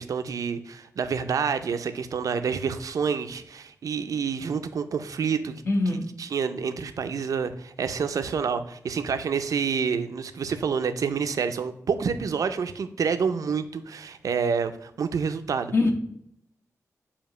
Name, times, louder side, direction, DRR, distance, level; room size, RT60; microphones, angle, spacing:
voice 1, 0.0-15.7, right 6 dB, 80° right, 9 dB, 0.6 m, -28 dB
voice 2, 5.7-6.0 15.7-15.9, left 2 dB, 45° left, 2 dB, 1.1 m, -22 dB
6.9 x 2.9 x 5.3 m, 0.72 s
wide cardioid pair, 170°, 6 cm